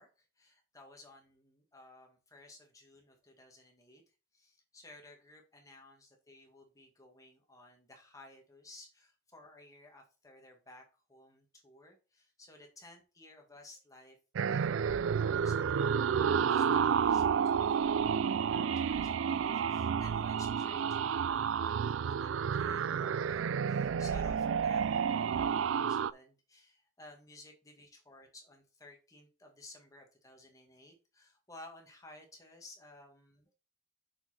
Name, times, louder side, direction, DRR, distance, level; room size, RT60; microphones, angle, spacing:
voice 1, 0.0-4.0 4.3-33.6, left 2 dB, 15° left, 2 dB, 1.8 m, -56 dB
sound 1, 14.4-26.1, right 7 dB, 75° right, 0.4 m, -30 dB
6.7 x 5.7 x 4.3 m, 0.32 s
head